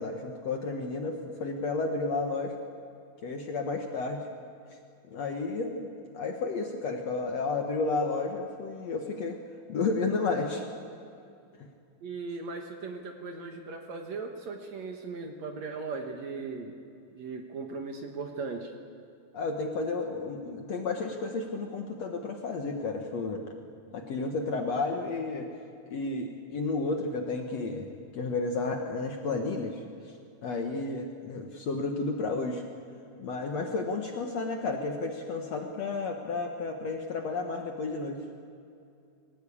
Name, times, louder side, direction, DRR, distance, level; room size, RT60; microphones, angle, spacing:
voice 1, 0.0-2.5 3.2-4.2 5.1-5.9 6.1-9.4 9.7-10.6 19.3-23.4 23.9-25.5 25.9-27.9 28.1-29.8 30.4-32.6 33.2-38.2, left 3 dB, 60° left, 3 dB, 1.9 m, -32 dB
voice 2, 12.0-16.8 17.1-18.7, right 4 dB, 60° right, 3 dB, 2.2 m, -38 dB
23.0 x 18.5 x 8.6 m, 2.5 s
omnidirectional pair, 4.3 m